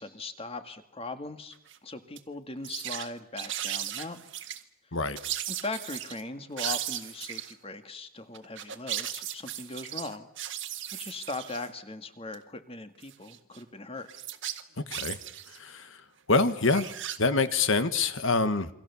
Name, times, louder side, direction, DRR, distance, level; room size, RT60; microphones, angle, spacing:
voice 1, 0.0-1.6 1.8-4.3 4.9-5.0 5.5-10.3 10.9-14.1, left 2 dB, 25° left, 8 dB, 1.9 m, -39 dB
sound 1, 1.5-1.8 2.2-2.3 2.6-3.1 3.4-4.6 5.2-6.2 6.6-7.5 8.3-11.7 12.3-12.4 13.0-13.6 14.1-15.6 16.5-17.2, right 11 dB, 55° right, 1.7 m, -36 dB
voice 2, 14.8-15.2 15.6-16.0 16.3-16.9 17.2-18.7, left 3 dB, 65° left, 11 dB, 1.5 m, -26 dB
28.0 x 24.5 x 7.1 m, 0.72 s
head